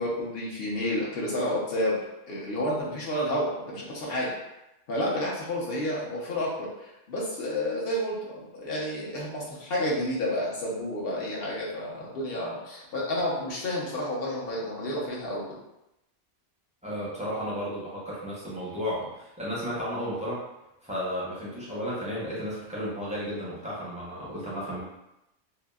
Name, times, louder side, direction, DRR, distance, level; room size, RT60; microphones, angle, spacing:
voice 1, 0.0-2.0 2.3-4.3 4.9-15.4, left 1 dB, 55° left, -5 dB, 0.9 m, -30 dB
voice 2, 16.8-20.4 20.8-24.8, equal, 10° right, -8 dB, 0.5 m, -33 dB
2.8 x 2.5 x 2.3 m, 0.90 s
omnidirectional pair, 1.3 m